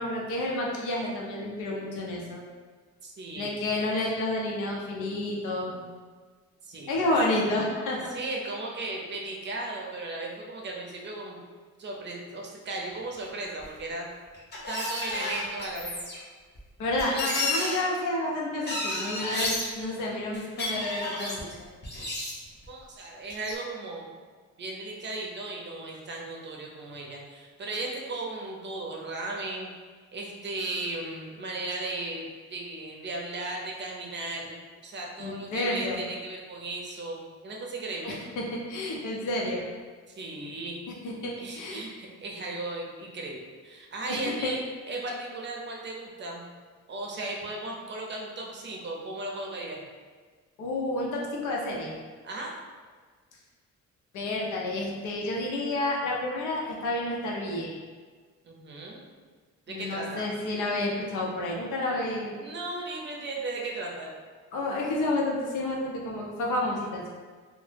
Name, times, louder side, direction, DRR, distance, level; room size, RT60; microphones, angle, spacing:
voice 1, 0.0-2.4 3.3-5.8 6.9-8.1 16.8-21.5 35.2-36.0 38.0-39.6 41.0-41.9 44.1-44.5 50.6-52.0 54.1-57.8 59.7-62.3 64.5-67.1, left 1 dB, 85° left, -2 dB, 0.6 m, -30 dB
voice 2, 3.0-3.6 6.6-7.1 8.1-11.4 11.8-14.1 14.7-16.0 22.7-24.1 24.6-29.7 30.1-38.2 40.1-40.8 41.4-44.6 44.9-46.5 46.9-49.8 52.2-52.6 58.4-59.1 59.7-60.3 61.8-61.9 62.4-64.1, right 2 dB, 40° right, -1 dB, 0.5 m, -36 dB
sound 1, 13.6-13.7 14.3-16.2 16.6-16.7 16.9-17.8 18.7-19.7 20.3-21.4 21.8-22.7 23.3-23.6, left 2 dB, 35° left, 0.8 m, -31 dB
2.1 x 2.0 x 3.2 m, 1.5 s
cardioid pair, 90°, 30 cm